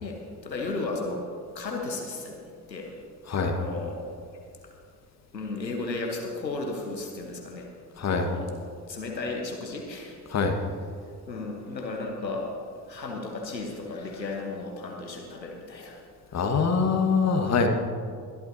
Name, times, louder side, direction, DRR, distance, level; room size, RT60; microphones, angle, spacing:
voice 1, 0.0-1.2 1.5-2.4 2.7-2.9 3.3-4.0 5.3-7.7 8.0-8.5 8.9-10.2 11.3-12.5 12.9-16.0 16.3-16.4, left 3 dB, 85° left, 1 dB, 1.3 m, -34 dB
voice 2, 8.0-8.3 10.3-10.6 16.3-17.7, left 5 dB, 30° left, 4 dB, 1.6 m, -24 dB
21.5 x 11.5 x 2.8 m, 2.2 s
figure-of-eight pair, 50°, 50 cm